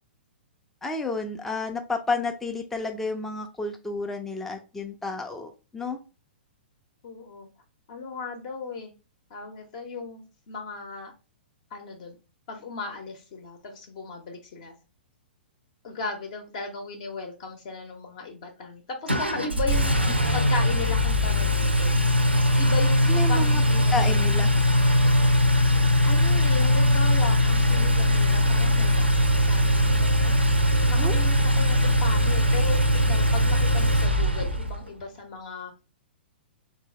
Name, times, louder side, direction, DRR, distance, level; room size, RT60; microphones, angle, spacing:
voice 1, 0.8-6.0 23.1-23.6 23.9-24.5 31.0-31.2, left 3 dB, 5° left, 3 dB, 0.4 m, -31 dB
voice 2, 7.0-7.5 7.9-8.9 9.3-11.1 11.7-12.2 12.5-14.7 15.8-20.0 20.3-21.9 22.6-24.3 26.1-30.5 30.8-35.7, left 4 dB, 40° left, 4 dB, 0.7 m, -36 dB
Engine, 19.1-34.8, left 1 dB, 90° right, 0.6 m, -21 dB
3.7 x 2.6 x 3.1 m, 0.32 s
figure-of-eight pair, 110°, 6 cm